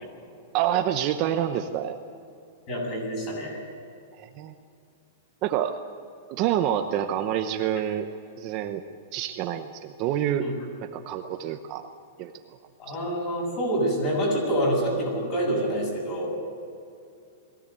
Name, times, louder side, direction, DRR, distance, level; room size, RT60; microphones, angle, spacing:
voice 1, 0.5-2.0 4.2-4.5 5.4-5.8 6.3-8.1 8.4-8.8 9.1-10.5 10.8-11.8 12.2-12.3, right 11 dB, 30° right, 6 dB, 0.9 m, -27 dB
voice 2, 2.7-3.6 10.4-10.5 12.8-16.3, right 1 dB, 30° left, 0 dB, 7.1 m, -27 dB
21.5 x 16.5 x 8.3 m, 2.5 s
supercardioid pair, 170°, 0 cm